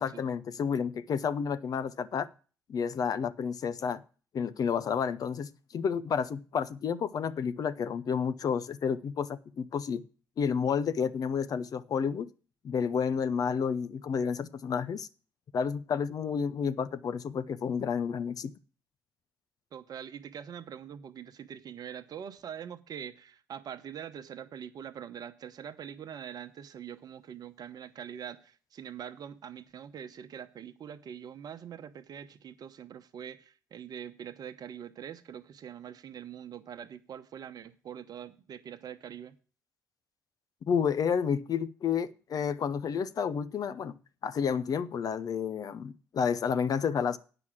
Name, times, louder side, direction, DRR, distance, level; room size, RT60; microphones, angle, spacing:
voice 1, 0.0-2.3 2.7-4.0 4.3-10.0 10.4-12.3 12.6-15.1 15.5-18.5 40.6-44.0 44.2-47.2, left 6 dB, 50° left, 0.8 m, -30 dB
voice 2, 19.7-39.4, right 8 dB, 55° right, 1.0 m, -44 dB
8.8 x 6.2 x 7.3 m
hypercardioid pair, 50°, 8 cm